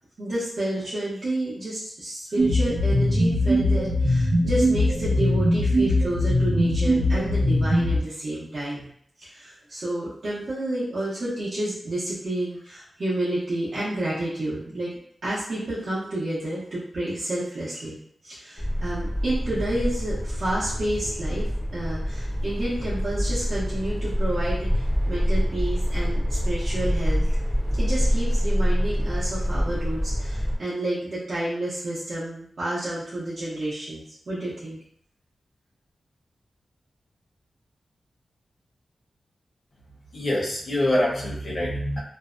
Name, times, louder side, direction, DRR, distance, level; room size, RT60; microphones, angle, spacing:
voice 1, 0.2-8.9 9.2-14.9 15.2-21.5 21.7-27.3 27.8-34.8, right 1 dB, 55° right, -10 dB, 0.7 m, -30 dB
sound 1, 2.4-8.0, left 1 dB, 85° right, 0.8 m, -21 dB
sound 2, 18.6-30.5, equal, 15° left, 0.6 m, -26 dB
voice 2, 40.1-42.0, left 1 dB, 65° left, -5 dB, 0.9 m, -25 dB
2.6 x 2.1 x 2.4 m, 0.67 s
wide cardioid pair, 145°, 0 cm